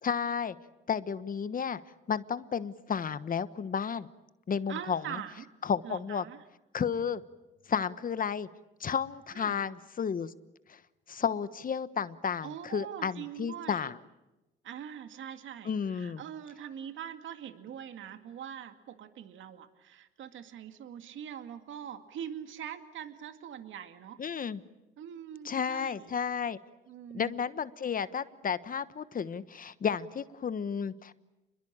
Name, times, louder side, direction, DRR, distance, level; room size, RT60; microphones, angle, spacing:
voice 1, 0.0-0.5 0.9-1.8 2.1-4.1 4.5-5.2 5.6-6.2 6.7-7.2 7.7-8.5 8.8-10.3 10.7-10.8 11.1-14.0 15.6-16.2 24.2-24.6 25.4-26.6 27.1-31.1, left 7 dB, 45° left, 14 dB, 1.2 m, -32 dB
voice 2, 4.7-5.4 5.8-6.4 9.3-9.6 12.4-13.9 14.6-24.2 25.0-26.1 26.9-27.4, right 9 dB, 75° right, 9 dB, 2.1 m, -43 dB
29.0 x 22.0 x 8.8 m, 1.0 s
cardioid pair, 90°, 20 cm